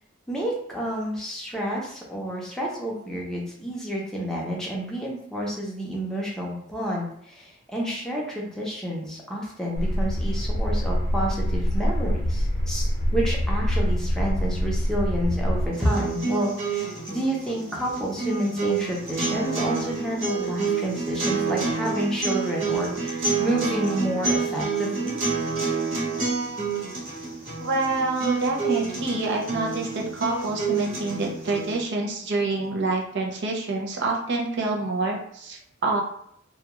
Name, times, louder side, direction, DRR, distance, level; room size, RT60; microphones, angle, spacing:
voice 1, 0.3-25.2, right 1 dB, 5° left, -4 dB, 0.6 m, -29 dB
sound 1, 9.7-15.7, equal, 70° left, 0.6 m, -25 dB
sound 2, 15.7-31.7, right 4 dB, 75° right, 1.2 m, -28 dB
voice 2, 27.6-36.0, right 3 dB, 60° right, 0 dB, 0.6 m, -27 dB
2.3 x 2.2 x 2.9 m, 0.68 s
head